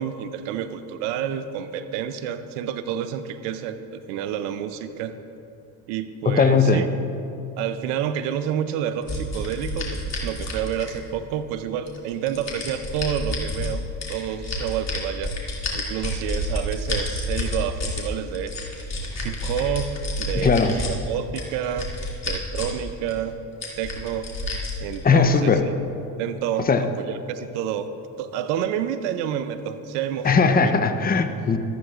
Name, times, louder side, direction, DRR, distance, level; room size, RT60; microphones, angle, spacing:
voice 1, 0.0-5.2 5.9-6.9 7.6-15.3 15.7-18.6 19.1-21.9 22.2-23.4 23.8-24.3 24.8-25.7 26.2-27.9 28.2-30.7, right 9 dB, 85° right, 11 dB, 0.7 m, -29 dB
voice 2, 6.3-6.8 20.3-20.8 25.0-25.7 26.6-26.9 30.2-31.6, left 5 dB, 25° left, 9 dB, 0.7 m, -19 dB
sound 1, 9.1-11.2 11.9-13.7 14.0-18.0 18.3-20.9 21.3-22.8 23.1-23.2 23.6-25.0, left 2 dB, 40° left, 2.5 m, -29 dB
13.5 x 13.0 x 2.5 m, 2.6 s
supercardioid pair, 70°, 39 cm